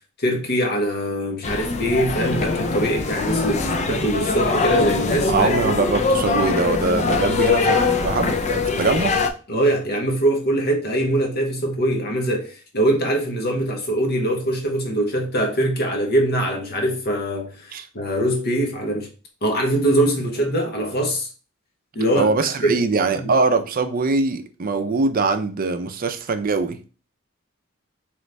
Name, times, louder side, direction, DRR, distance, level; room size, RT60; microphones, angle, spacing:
voice 1, 0.2-5.6 9.5-19.1 19.4-21.3 21.9-22.3 22.6-22.8 23.2-23.3, right 1 dB, 50° left, 0.9 m, -22 dB
sound 1, 1.4-9.3, left 4 dB, 35° left, 0.4 m, -22 dB
voice 2, 5.3-9.2 17.7-17.9 22.2-26.8, right 3 dB, 45° right, 0.5 m, -22 dB
3.8 x 3.1 x 3.3 m
head